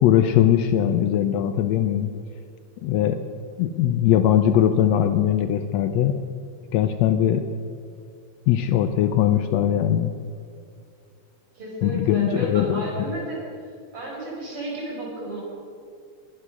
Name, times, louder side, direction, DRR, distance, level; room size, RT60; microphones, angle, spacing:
voice 1, 0.0-2.1 2.8-3.2 3.6-6.2 6.7-7.5 8.5-10.1 11.8-12.8, left 10 dB, 75° left, 9 dB, 1.7 m, -20 dB
voice 2, 11.5-13.4 13.9-15.4, right 1 dB, 50° right, -4 dB, 5.6 m, -32 dB
21.0 x 9.8 x 6.2 m, 2.3 s
omnidirectional pair, 3.3 m